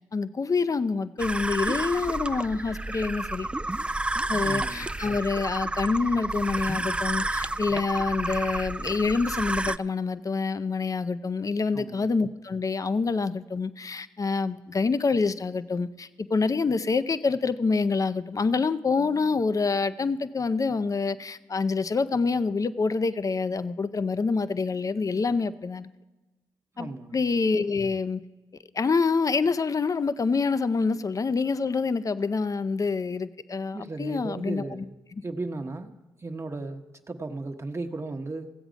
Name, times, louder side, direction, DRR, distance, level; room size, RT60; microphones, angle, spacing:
voice 1, 0.1-3.5 4.3-25.9 26.8-28.2 28.7-34.8, left 4 dB, 40° left, 13 dB, 0.6 m, -26 dB
sound 1, 1.2-9.8, right 2 dB, 10° right, 0.3 m, -30 dB
voice 2, 4.4-4.9 11.7-12.1 26.8-27.2 33.7-34.9 35.2-38.5, right 2 dB, 30° right, 5 dB, 1.0 m, -36 dB
15.5 x 7.9 x 5.1 m, 1.1 s
supercardioid pair, 45°, 9 cm